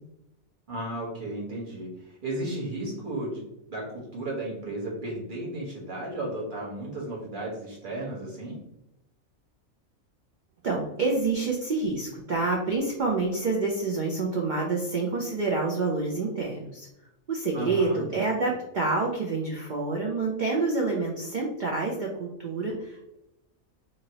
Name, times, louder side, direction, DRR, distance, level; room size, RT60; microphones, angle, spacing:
voice 1, 0.7-3.4 3.7-8.6 17.5-18.5, right 1 dB, 40° right, -5 dB, 1.2 m, -34 dB
voice 2, 10.6-16.9 17.3-23.2, right 3 dB, 80° right, -1 dB, 0.4 m, -27 dB
2.9 x 2.7 x 2.7 m, 0.87 s
omnidirectional pair, 1.5 m